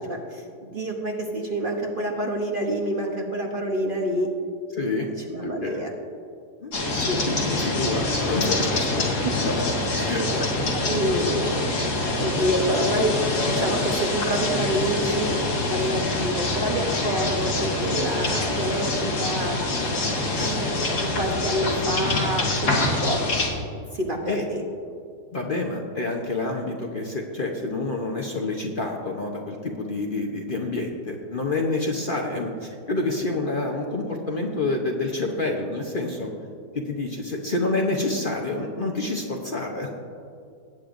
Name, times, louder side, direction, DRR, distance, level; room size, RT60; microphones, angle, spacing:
voice 1, 0.1-4.3 5.0-5.9 7.1-7.2 8.7-8.8 9.2-9.3 10.1-10.3 10.7-11.6 12.2-13.1 13.5-15.4 15.7-19.6 20.3-23.2 23.9-24.6, right 1 dB, 40° right, 1 dB, 0.9 m, -27 dB
voice 2, 4.7-5.1 5.4-5.8 6.6-6.7 7.3-9.0 9.4-9.6 10.0-10.5 20.4-20.6 24.3-24.4 25.3-36.3 36.7-39.9, left 2 dB, 40° left, 1 dB, 0.9 m, -28 dB
sound 1, 6.7-23.5, left 2 dB, 85° left, 2.3 m, -25 dB
18.5 x 8.7 x 2.6 m, 2.4 s
omnidirectional pair, 1.6 m